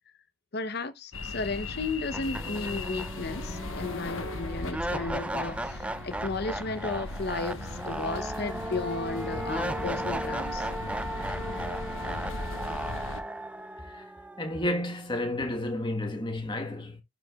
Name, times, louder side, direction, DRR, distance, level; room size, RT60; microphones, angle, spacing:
voice 1, 0.5-10.7, left 3 dB, 50° left, 0.7 m, -34 dB
sound 1, 1.1-13.2, left 2 dB, 70° left, 1.1 m, -38 dB
sound 2, 1.6-1.7 2.1-15.2, right 1 dB, 5° right, 0.3 m, -36 dB
voice 2, 14.4-17.0, left 1 dB, 20° left, 1.2 m, -31 dB
11.5 x 4.8 x 2.3 m
head